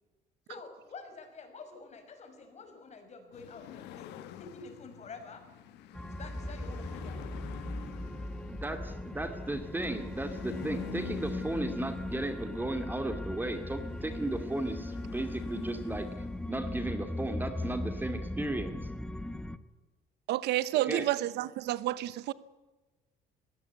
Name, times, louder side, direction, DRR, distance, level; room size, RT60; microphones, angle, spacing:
voice 1, 0.5-5.4 6.0-7.2, left 4 dB, 40° left, 6.0 m, -48 dB
sound 1, 3.3-16.8, left 11 dB, 85° left, 1.6 m, -48 dB
sound 2, 5.9-19.6, left 1 dB, 5° left, 1.1 m, -38 dB
voice 2, 8.5-16.1 16.5-18.7 20.9-21.1, right 2 dB, 10° right, 2.3 m, -35 dB
voice 3, 20.3-22.3, right 15 dB, 80° right, 0.9 m, -30 dB
21.0 x 17.5 x 8.3 m
cardioid pair, 110°, 17 cm